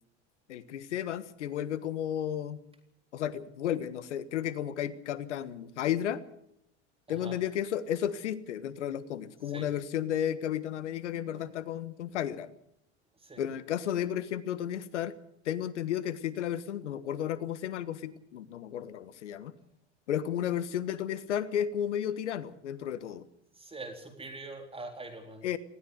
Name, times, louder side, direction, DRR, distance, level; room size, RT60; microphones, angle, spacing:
voice 1, 0.5-2.6 3.1-6.2 7.1-12.5 13.4-15.1 15.4-19.5 20.1-23.3 25.4-25.6, left 10 dB, 85° left, 16 dB, 1.5 m, -33 dB
voice 2, 7.1-7.4 9.4-9.7 11.3-11.5 13.2-13.4 23.5-25.5, right 2 dB, 15° right, 4 dB, 4.0 m, -44 dB
19.5 x 16.5 x 8.1 m, 0.75 s
hypercardioid pair, 85°, 35 cm